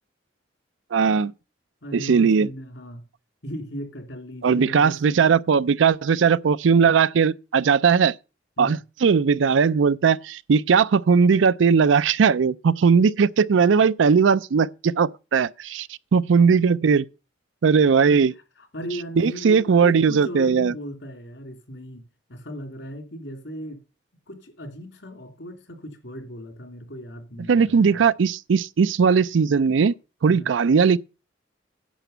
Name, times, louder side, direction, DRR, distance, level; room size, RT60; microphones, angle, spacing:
voice 1, 0.9-1.3 1.9-2.5 4.4-8.1 8.6-17.0 17.6-18.3 19.2-20.7 27.5-29.9 30.2-31.0, right 6 dB, 80° right, 0.4 m, -19 dB
voice 2, 1.8-3.0 3.4-5.3 8.6-8.8 18.1-18.3 18.6-23.8 24.3-28.0 30.3-30.5, equal, 70° left, 3.0 m, -37 dB
10.5 x 5.9 x 6.8 m
head